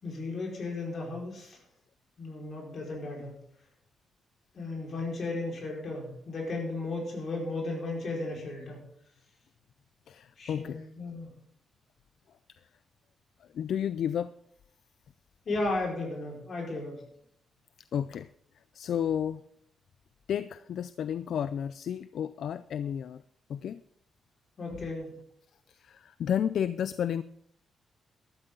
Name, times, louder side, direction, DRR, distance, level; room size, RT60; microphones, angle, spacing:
voice 1, 0.0-1.6 2.2-3.4 4.5-8.8 10.4-11.3 15.4-17.0 24.6-25.1, left 2 dB, 50° left, -1 dB, 4.9 m, -35 dB
voice 2, 10.1-10.8 13.5-14.3 17.9-18.3 18.7-19.4 20.3-23.2 23.5-23.8 24.7-24.8 25.7-27.2, left 9 dB, 75° left, 15 dB, 0.4 m, -32 dB
13.5 x 13.0 x 3.9 m, 0.70 s
cardioid pair, 115°, 0 cm